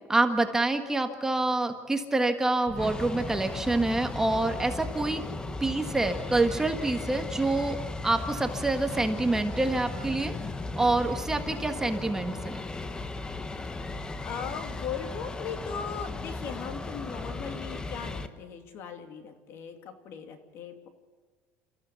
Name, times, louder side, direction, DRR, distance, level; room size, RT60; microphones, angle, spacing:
voice 1, 0.1-5.2 5.6-7.8 8.0-10.3 10.8-12.6, right 2 dB, 10° right, 6 dB, 1.6 m, -27 dB
sound 1, 2.7-18.3, left 3 dB, 15° left, 1.2 m, -36 dB
voice 2, 13.7-20.9, left 7 dB, 55° left, 6 dB, 2.8 m, -39 dB
28.5 x 15.0 x 8.3 m, 1.4 s
cardioid pair, 125°, 5 cm